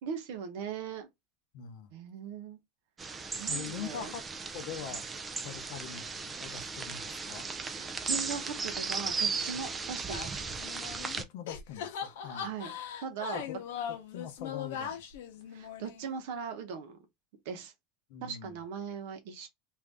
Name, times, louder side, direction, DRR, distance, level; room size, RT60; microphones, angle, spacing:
voice 1, 0.0-1.1 1.9-2.6 3.4-4.1 7.6-10.5 12.2-12.7 13.0-13.4 15.5-17.0 17.4-17.7 18.2-19.5, right 6 dB, 60° right, 0.8 m, -39 dB
voice 2, 1.5-1.9 3.4-4.2 4.5-5.1 5.4-7.5 11.2-12.5 13.3-13.6 14.1-15.0 18.1-18.6, left 8 dB, 55° left, 0.7 m, -43 dB
sound 1, 3.0-11.2, right 4 dB, 15° right, 0.3 m, -36 dB
sound 2, 10.1-11.2 11.5-16.2, left 8 dB, 90° left, 0.8 m, -40 dB
2.7 x 2.5 x 3.4 m
supercardioid pair, 175°, 0 cm